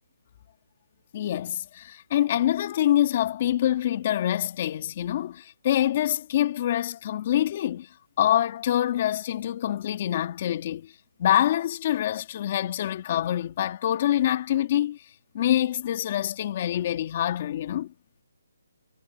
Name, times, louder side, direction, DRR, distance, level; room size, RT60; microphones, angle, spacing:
voice 1, 1.1-10.9 11.2-15.0 15.3-17.9, left 12 dB, 30° left, 2.5 m, -25 dB
hypercardioid pair, 170°, 0 cm